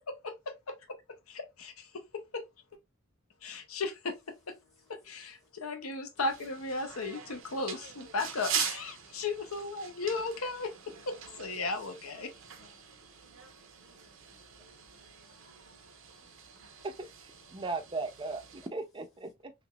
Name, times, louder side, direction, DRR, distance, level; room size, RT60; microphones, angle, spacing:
voice 1, 1.3-2.4 3.4-4.2 4.5-4.6 4.9-10.7 11.1-11.2 11.4-12.3, left 3 dB, 90° left, 0.8 m, -35 dB
voice 2, 4.7-5.5 10.2-10.3 10.7-11.1 12.4-16.9 17.4-17.8 18.5-18.7, left 3 dB, 15° left, 0.8 m, -67 dB
sound 1, 6.2-18.7, right 7 dB, 65° right, 0.8 m, -42 dB
voice 3, 16.8-19.5, right 3 dB, 25° right, 0.5 m, -38 dB
3.3 x 3.1 x 2.4 m
head